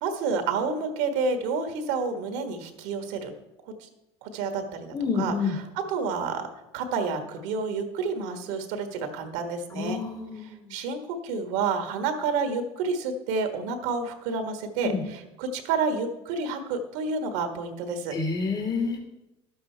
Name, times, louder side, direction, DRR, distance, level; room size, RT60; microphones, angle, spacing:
voice 1, 0.0-3.3 3.8-3.9 4.2-10.0 10.4-18.1, right 4 dB, 75° right, 7 dB, 1.5 m, -29 dB
voice 2, 4.9-5.6 9.7-10.7 14.8-15.0 18.1-19.0, left 5 dB, 25° left, 2 dB, 2.0 m, -28 dB
11.5 x 7.8 x 4.5 m, 0.92 s
hypercardioid pair, 80°, 14 cm